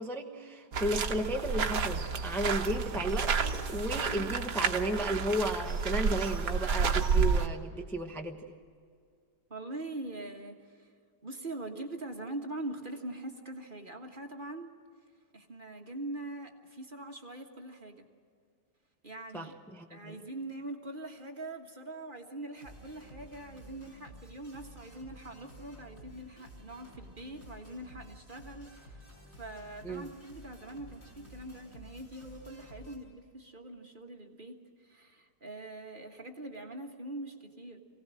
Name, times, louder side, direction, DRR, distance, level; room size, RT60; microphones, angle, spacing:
voice 1, 0.0-8.4 19.3-20.2 29.8-30.1, right 1 dB, ahead, 2 dB, 0.9 m, -34 dB
sound 1, 0.7-7.5, right 5 dB, 55° right, 1.5 m, -30 dB
voice 2, 9.5-10.9 11.2-14.7 15.3-18.1 19.0-19.5 19.9-29.0 29.4-37.8, right 2 dB, 30° right, 3 dB, 1.5 m, -43 dB
sound 2, 22.5-33.0, equal, 35° left, 6.1 m, -52 dB
24.0 x 17.5 x 7.6 m, 2.2 s
omnidirectional pair, 1.9 m